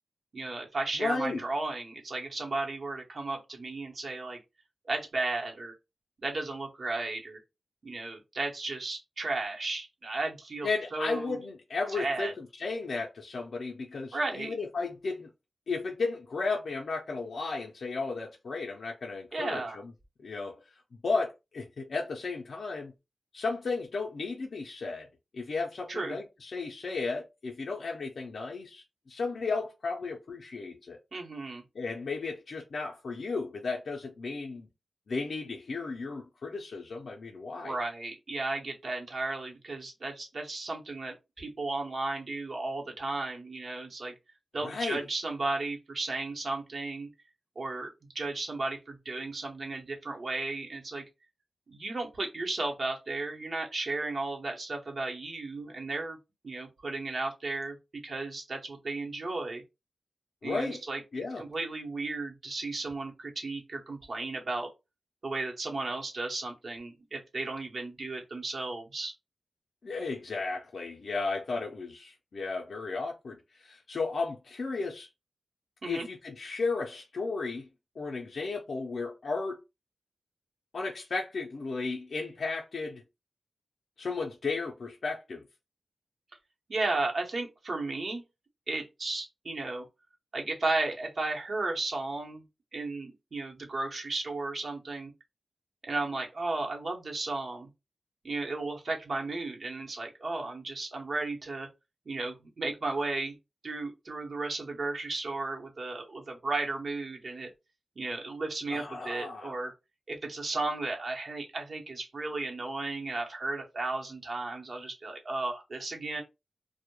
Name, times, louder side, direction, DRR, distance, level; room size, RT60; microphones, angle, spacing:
voice 1, 0.3-4.4 4.9-5.7 6.2-7.4 7.8-11.4 11.9-12.3 14.1-14.5 19.3-19.8 25.9-26.2 31.1-31.6 37.6-44.1 44.5-47.1 47.6-51.0 51.7-56.2 56.4-59.6 60.4-64.7 65.2-69.1 75.8-76.1 86.7-88.2 88.7-89.8 90.3-92.4 92.7-95.1 95.9-97.7 98.2-101.7 102.1-103.3 103.6-107.5 108.0-109.7 110.1-116.2, right 3 dB, 65° right, 0.8 m, -34 dB
voice 2, 1.0-1.4 10.6-15.3 15.7-19.8 20.2-22.9 23.3-25.1 25.3-31.0 31.7-34.7 35.1-37.8 44.6-45.0 60.4-60.8 61.1-61.4 69.8-75.1 75.9-77.7 78.0-79.6 80.7-83.0 84.0-85.4 108.7-109.5, left 4 dB, 75° left, 0.4 m, -34 dB
2.2 x 2.0 x 2.9 m
wide cardioid pair, 70°, 0 cm